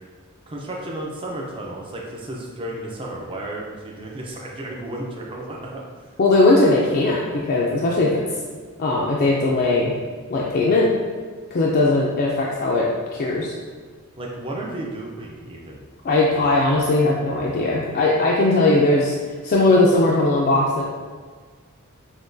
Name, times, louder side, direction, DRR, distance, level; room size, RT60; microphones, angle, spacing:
voice 1, 0.5-5.9 14.2-15.8 16.4-16.6, right 1 dB, 25° right, -2 dB, 0.4 m, -33 dB
voice 2, 6.2-8.2 8.8-9.9 10.3-10.9 11.5-12.9 13.1-13.5 16.0-19.1 19.4-20.8, left 2 dB, 45° left, -4 dB, 0.4 m, -19 dB
5.9 x 2.2 x 2.6 m, 1.5 s
head